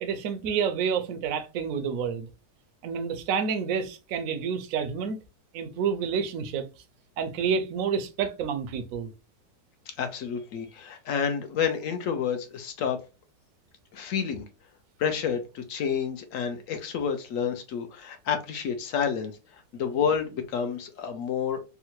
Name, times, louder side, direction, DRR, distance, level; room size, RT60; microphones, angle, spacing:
voice 1, 0.0-2.3 2.8-5.2 5.5-6.7 7.2-9.1, right 6 dB, 70° right, 0.8 m, -29 dB
voice 2, 10.0-13.0 13.9-14.4 15.0-19.3 19.7-21.6, left 7 dB, 70° left, 0.8 m, -29 dB
3.6 x 2.1 x 2.9 m
omnidirectional pair, 2.0 m